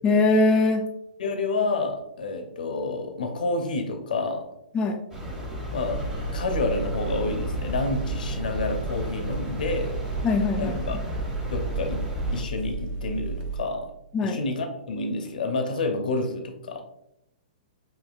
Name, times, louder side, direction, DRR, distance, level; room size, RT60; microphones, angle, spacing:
voice 1, 0.0-0.9 4.7-5.0 10.2-10.8 14.1-14.4, left 3 dB, 20° left, 3 dB, 0.3 m, -21 dB
voice 2, 1.2-4.5 5.7-6.1 6.3-10.0 10.6-11.0 11.5-12.0 12.3-13.9 14.2-16.8, left 3 dB, 70° left, 5 dB, 0.6 m, -29 dB
sound 1, 5.1-12.4, equal, 10° right, 1.1 m, -34 dB
sound 2, 5.7-13.6, right 3 dB, 65° right, 0.7 m, -33 dB
5.2 x 2.7 x 2.3 m, 0.84 s
hypercardioid pair, 125°, 5 cm